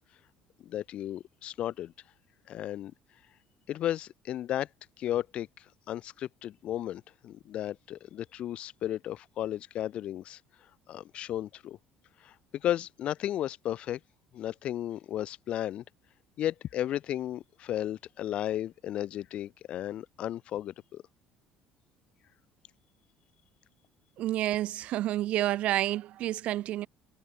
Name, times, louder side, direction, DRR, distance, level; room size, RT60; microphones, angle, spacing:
voice 1, 0.6-1.9 2.5-2.9 3.7-4.7 5.0-10.4 10.9-11.8 12.2-14.0 14.3-15.8 16.4-21.0, left 12 dB, 45° left, 1.4 m, -34 dB
voice 2, 24.2-26.9, right 14 dB, 50° right, 0.7 m, -29 dB
cardioid pair, 165°, 3 cm